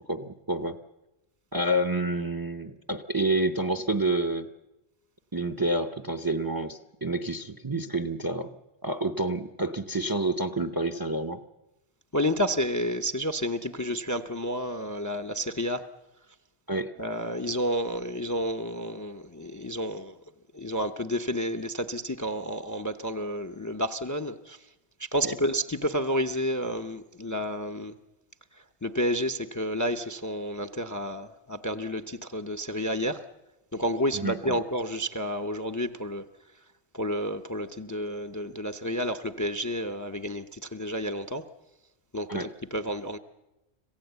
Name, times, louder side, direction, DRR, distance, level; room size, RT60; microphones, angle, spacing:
voice 1, 0.1-0.8 1.5-4.5 5.3-8.5 8.8-11.4 16.7-16.9 25.2-25.3 34.1-34.6 42.3-42.5, right 2 dB, 25° right, 9 dB, 0.6 m, -28 dB
voice 2, 12.1-15.8 17.0-20.2 20.5-24.6 25.0-28.0 28.8-33.2 33.7-36.2 36.9-41.5 42.1-43.2, equal, 20° left, 9 dB, 0.6 m, -30 dB
26.0 x 16.0 x 8.1 m, 1.0 s
omnidirectional pair, 1.1 m